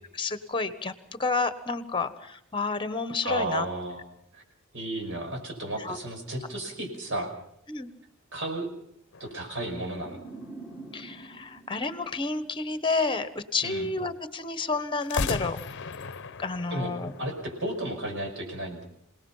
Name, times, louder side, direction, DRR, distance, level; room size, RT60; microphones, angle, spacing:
voice 1, 0.1-0.9 1.2-3.6 5.8-6.0 7.7-7.9 10.9-15.6 16.4-17.1, left 3 dB, 25° left, 12 dB, 1.2 m, -30 dB
voice 2, 3.2-4.0 4.3-4.4 4.7-7.3 8.3-8.7 9.2-10.2 13.6-13.9 16.7-16.9 17.2-18.8, right 1 dB, 60° right, 3 dB, 5.6 m, -33 dB
sound 1, 9.1-10.9 15.0-18.1, left 4 dB, 55° left, 0.8 m, -37 dB
sound 2, 9.9-13.0, right 3 dB, 10° right, 1.9 m, -46 dB
27.0 x 18.5 x 5.7 m, 0.75 s
head